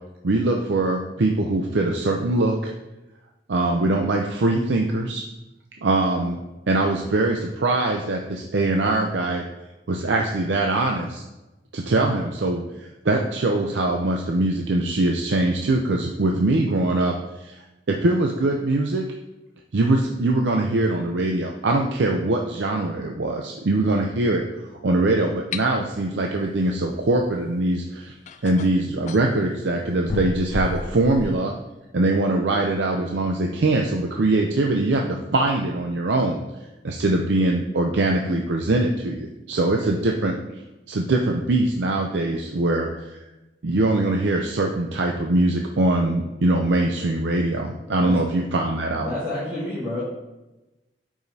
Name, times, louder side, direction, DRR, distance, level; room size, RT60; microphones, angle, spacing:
voice 1, 0.2-2.7 3.5-5.2 5.8-6.4 6.7-9.4 9.9-11.2 11.7-17.5 17.9-19.0 19.7-24.4 24.8-28.1 28.4-31.5 31.9-36.4 36.8-40.3 40.9-43.2 43.6-49.1, right 2 dB, 80° right, 1 dB, 0.6 m, -22 dB
sound 1, 25.5-25.7 27.5-27.6 28.3-29.3 30.1-31.4, left 3 dB, 40° left, 0.3 m, -31 dB
voice 2, 47.9-48.2 48.9-50.0, left 1 dB, 15° right, -11 dB, 2.0 m, -29 dB
9.0 x 5.0 x 2.8 m, 1.0 s
head